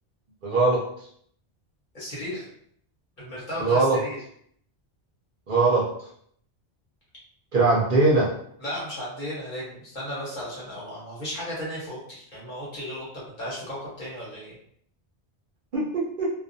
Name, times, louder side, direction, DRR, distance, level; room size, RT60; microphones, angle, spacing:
voice 1, 0.4-0.8 3.6-4.0 5.5-6.1 7.5-8.3 15.7-16.3, right 3 dB, 55° right, -5 dB, 0.7 m, -21 dB
voice 2, 1.9-2.5 3.2-4.2 8.6-13.1 13.4-14.5, equal, 45° left, -7 dB, 1.2 m, -35 dB
2.4 x 2.2 x 2.6 m, 0.65 s
omnidirectional pair, 1.1 m